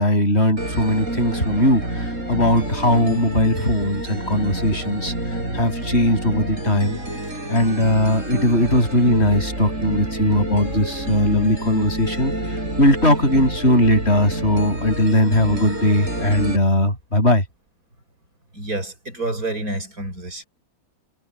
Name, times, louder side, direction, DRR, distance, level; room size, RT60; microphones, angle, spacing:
voice 1, 0.0-5.1 5.5-7.0 7.5-12.3 12.8-17.4, left 1 dB, 45° left, 8.2 m, -19 dB
sound 1, 0.6-16.6, right 1 dB, 55° right, 7.1 m, -28 dB
voice 2, 18.5-20.4, right 2 dB, 75° right, 7.8 m, -28 dB
omnidirectional pair, 1.6 m